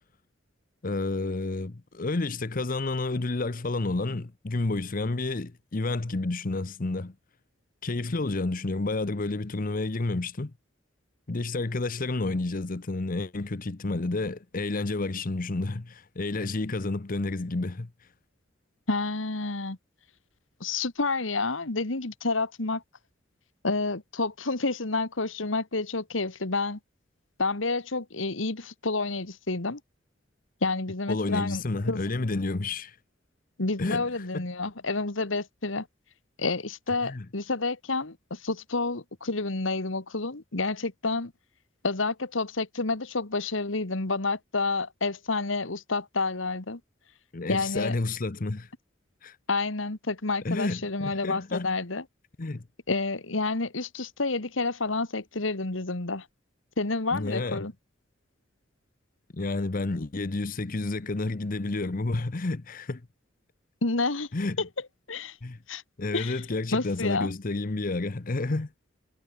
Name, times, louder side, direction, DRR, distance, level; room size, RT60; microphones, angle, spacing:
voice 1, 0.8-7.1 7.8-10.5 11.3-17.9 31.1-33.0 33.8-34.4 37.0-37.3 47.3-48.7 49.2-49.4 50.4-51.7 52.4-52.6 57.1-57.7 59.3-63.0 64.3-64.6 65.4-65.6 66.0-68.7, left 2 dB, 45° left, 0.8 m, -30 dB
voice 2, 18.9-19.8 20.6-22.8 23.6-26.8 27.4-29.8 30.6-32.0 33.6-35.9 36.4-41.3 41.8-46.8 47.5-47.9 49.5-52.0 52.9-56.3 56.8-57.7 63.8-64.3 64.6-64.7 65.1-65.4 65.7-65.8 66.1-66.4 66.7-67.3, left 3 dB, 90° left, 1.9 m, -29 dB
head